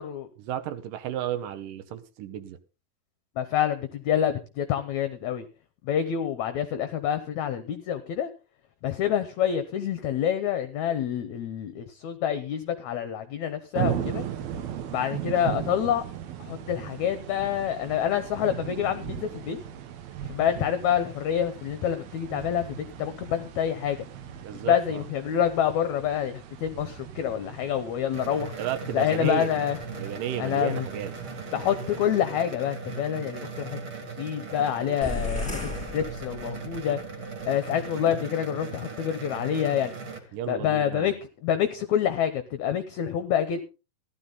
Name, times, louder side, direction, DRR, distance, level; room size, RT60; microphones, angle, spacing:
voice 1, 0.4-2.6 24.4-25.0 28.6-29.5 29.9-31.1 40.3-41.1, right 10 dB, 70° right, 2.4 m, -33 dB
voice 2, 3.4-5.4 5.8-8.3 8.8-14.2 14.9-16.0 16.4-19.6 20.3-24.1 24.5-28.5 28.9-29.8 30.4-30.9 31.5-37.0 37.5-39.9 40.5-41.1 41.4-43.6, left 9 dB, 70° left, 1.8 m, -27 dB
sound 1, 13.8-32.1, right 10 dB, 90° right, 3.1 m, -38 dB
sound 2, 28.1-40.2, right 4 dB, 40° right, 2.7 m, -38 dB
sound 3, 35.0-36.9, left 2 dB, ahead, 2.7 m, -34 dB
15.0 x 12.0 x 4.0 m
omnidirectional pair, 4.2 m